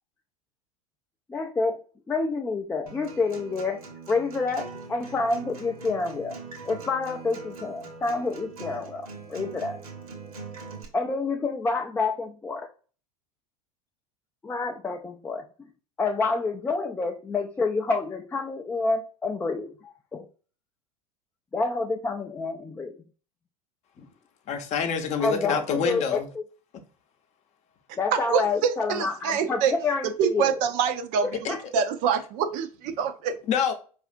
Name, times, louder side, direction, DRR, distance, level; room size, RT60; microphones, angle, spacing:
voice 1, 1.3-1.8 2.1-3.8 4.1-6.4 6.7-9.8 10.9-12.7 14.4-15.5 16.0-20.3 21.5-22.9 25.2-26.4 28.0-30.6 31.5-31.6, left 3 dB, 10° left, 0.3 m, -28 dB
Acoustic guitar, 2.9-10.8, right 4 dB, 70° right, 1.1 m, -42 dB
voice 2, 24.5-26.3 33.5-33.7, left 7 dB, 35° left, 0.7 m, -26 dB
voice 3, 28.1-29.7 30.2-33.4, right 7 dB, 45° right, 0.5 m, -26 dB
4.7 x 2.4 x 2.4 m
figure-of-eight pair, 80°, 19 cm